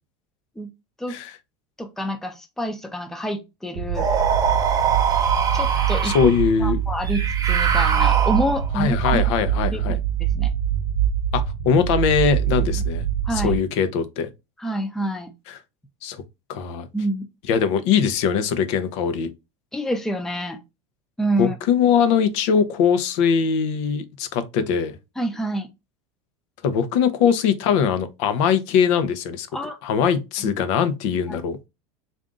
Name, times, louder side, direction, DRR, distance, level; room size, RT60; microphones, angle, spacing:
voice 1, 1.8-4.1 5.5-6.3 6.6-9.2 9.6-10.5 12.7-12.8 13.2-13.6 14.6-15.3 16.9-17.3 19.7-20.6 21.2-21.6 25.2-25.7 29.5-29.8 30.4-30.5 31.3-31.4, right 1 dB, 5° left, 0.5 m, -27 dB
sound 1, 3.7-13.6, right 10 dB, 60° right, 0.9 m, -24 dB
sound 2, 4.0-6.4 7.1-8.7, right 6 dB, 20° right, 0.9 m, -23 dB
voice 2, 6.0-6.8 8.8-10.0 11.3-13.1 13.3-14.3 15.5-15.6 16.0-16.2 16.5-16.9 17.5-19.3 21.4-25.0 26.6-29.5 29.8-31.6, left 7 dB, 65° left, 0.8 m, -21 dB
3.8 x 2.6 x 3.6 m
supercardioid pair, 135°, 16 cm